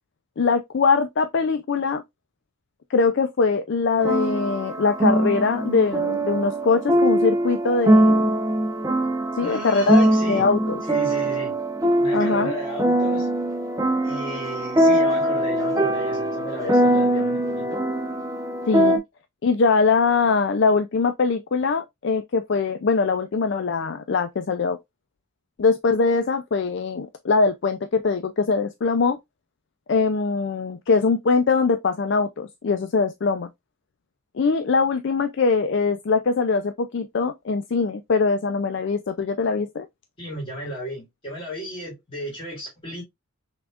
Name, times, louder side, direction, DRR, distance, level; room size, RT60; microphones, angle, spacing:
voice 1, 0.4-2.0 2.9-8.3 9.3-10.8 12.1-12.5 18.7-19.0 19.4-24.8 25.6-29.2 29.9-33.5 34.3-39.9, left 4 dB, 55° left, 0.4 m, -22 dB
sound 1, 4.0-19.0, right 1 dB, 15° right, 0.6 m, -22 dB
voice 2, 9.4-10.5 10.9-11.6 12.0-13.3 14.0-17.8 40.2-43.0, equal, 25° left, 3.2 m, -34 dB
6.0 x 3.6 x 2.4 m
head